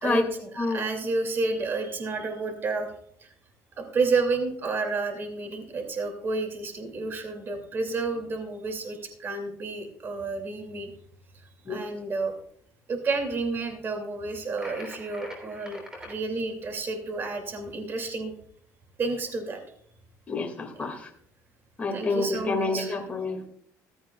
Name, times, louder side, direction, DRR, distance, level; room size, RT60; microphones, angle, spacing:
voice 1, 0.0-2.9 3.2-3.3 3.8-10.9 11.7-12.3 12.9-18.3 19.0-19.6 20.8-21.0 21.9-23.0, right 3 dB, 35° right, 5 dB, 2.5 m, -30 dB
sound 1, 14.6-16.2, left 1 dB, 10° right, 3.2 m, -43 dB
voice 2, 20.3-21.1 21.8-23.5, left 3 dB, 20° left, 3 dB, 2.2 m, -28 dB
15.0 x 13.5 x 2.4 m, 0.63 s
cardioid pair, 130°, 6 cm